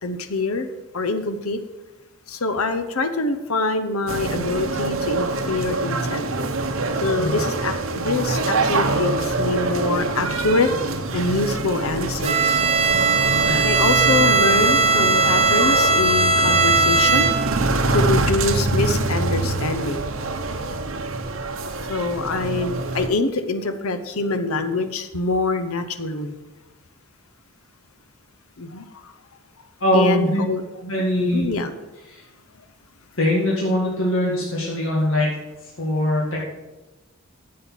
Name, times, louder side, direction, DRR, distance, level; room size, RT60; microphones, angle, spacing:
voice 1, 0.0-1.6 2.3-6.3 7.0-10.7 11.1-12.6 13.6-17.3 17.9-20.1 21.9-26.4 28.6-29.1 29.9-30.6 31.2-31.7, left 3 dB, 90° left, 9 dB, 0.8 m, -25 dB
sound 1, 4.1-23.1, right 3 dB, 65° right, 1.0 m, -25 dB
Bowed string instrument, 12.2-17.7, right 4 dB, 30° right, 0.7 m, -19 dB
voice 2, 29.8-30.4 30.8-31.4 32.1-32.2 33.2-35.4 35.8-36.5, left 1 dB, 65° left, -4 dB, 2.1 m, -22 dB
9.7 x 7.7 x 5.8 m, 1.1 s
head